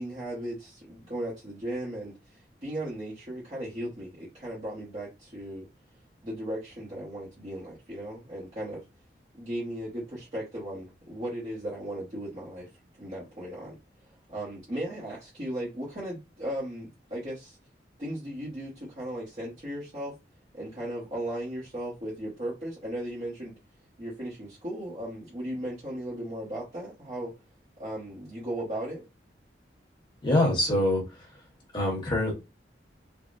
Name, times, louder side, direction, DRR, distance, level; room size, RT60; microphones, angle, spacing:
voice 1, 0.0-5.7 6.2-8.8 9.3-12.7 13.0-13.8 14.3-17.6 18.0-20.1 20.5-23.5 24.0-27.3 27.8-29.0, right 1 dB, 35° right, 1.0 m, -36 dB
voice 2, 30.2-31.3 31.7-32.3, left 1 dB, 25° left, 1.3 m, -25 dB
3.5 x 2.2 x 2.5 m
head